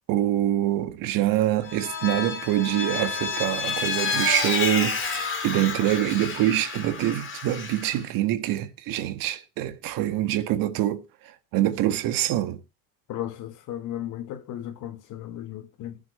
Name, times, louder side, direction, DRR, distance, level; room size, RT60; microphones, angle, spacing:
voice 1, 0.1-12.6, right 13 dB, 55° right, 1.8 m, -25 dB
Vehicle, 1.6-8.0, left 5 dB, 30° left, 3.4 m, -29 dB
voice 2, 13.1-16.0, left 12 dB, 45° left, 1.9 m, -35 dB
19.0 x 8.1 x 4.4 m
supercardioid pair, 115°, 41 cm